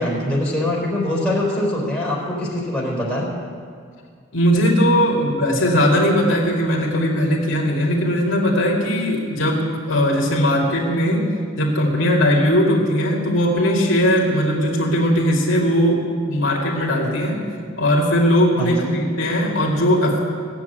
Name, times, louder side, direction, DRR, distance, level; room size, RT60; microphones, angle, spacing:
voice 1, 0.0-3.3 18.6-19.0, left 1 dB, 5° left, -4 dB, 4.3 m, -23 dB
voice 2, 4.3-11.3 11.5-17.4 17.8-20.2, equal, 70° left, -2 dB, 2.3 m, -19 dB
17.5 x 7.6 x 9.2 m, 2.1 s
head